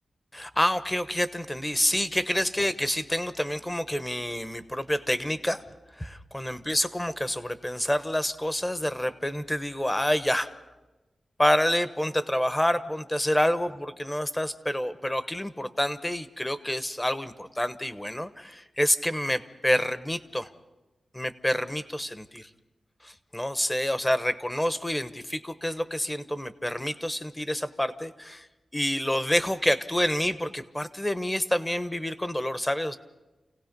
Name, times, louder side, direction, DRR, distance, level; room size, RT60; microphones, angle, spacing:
voice 1, 0.3-5.6 6.0-10.5 11.4-20.5 21.1-22.5 23.0-28.5 28.7-33.0, left 1 dB, 10° left, 12 dB, 1.1 m, -28 dB
29.0 x 17.5 x 5.3 m, 1.1 s
wide cardioid pair, 100°, 0 cm